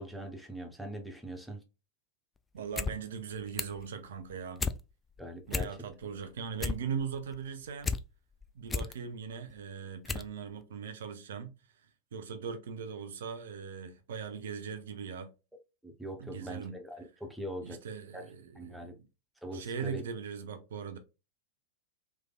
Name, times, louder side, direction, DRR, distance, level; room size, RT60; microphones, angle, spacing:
voice 1, 0.0-1.6 5.2-5.7 15.8-17.8 18.1-18.2 18.5-18.9 19.4-20.0, right 1 dB, ahead, 0.9 m, -41 dB
voice 2, 2.5-4.6 5.5-8.0 8.5-15.3 16.2-16.8 17.6-19.1 19.5-21.0, right 6 dB, 60° right, 0.5 m, -40 dB
sound 1, 2.6-2.9 3.2-3.8 4.2-4.8 5.2-5.3 5.5-6.1 6.4-8.0 8.4-8.9 9.5-9.6 10.0-10.3 10.6-10.7, left 4 dB, 15° left, 0.3 m, -33 dB
3.5 x 3.2 x 2.3 m
figure-of-eight pair, 90°, 0 cm